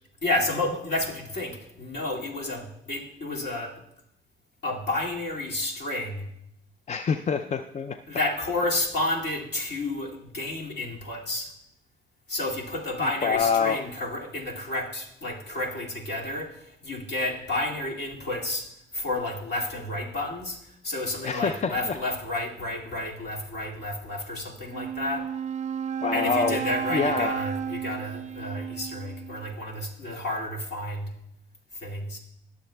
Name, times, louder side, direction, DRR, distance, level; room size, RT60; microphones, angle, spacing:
voice 1, 0.2-3.8 4.6-6.3 8.1-11.5 12.3-25.3 26.1-31.1 31.7-32.2, left 1 dB, 55° left, -2 dB, 2.3 m, -31 dB
voice 2, 6.9-8.0 13.2-13.8 21.2-22.0 26.0-26.6 26.9-27.3, left 5 dB, 35° left, 9 dB, 0.4 m, -26 dB
Wind instrument woodwind instrument, 24.6-29.6, right 8 dB, 35° right, 0.4 m, -32 dB
21.0 x 7.2 x 2.2 m, 0.79 s
cardioid pair, 90°, 20 cm